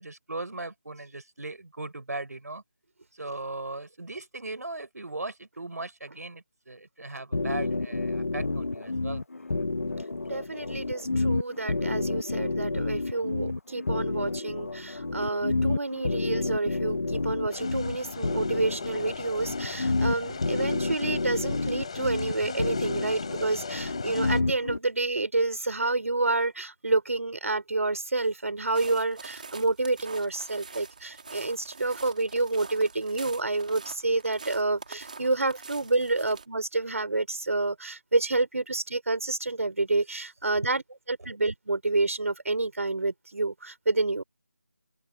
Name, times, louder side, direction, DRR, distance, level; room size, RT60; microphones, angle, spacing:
voice 1, 0.0-2.6 3.1-9.2 26.4-26.5 34.9-35.0 41.3-41.4, right 2 dB, 80° right, 4.2 m, -38 dB
sound 1, 7.3-24.8, left 3 dB, 60° left, 1.1 m, -30 dB
voice 2, 10.3-40.8 41.1-44.2, right 2 dB, 60° right, 4.2 m, -29 dB
sound 2, 17.5-24.4, left 6 dB, 20° left, 5.4 m, -40 dB
sound 3, 28.6-36.5, right 4 dB, 30° right, 2.5 m, -45 dB
open air
figure-of-eight pair, 180°, 9 cm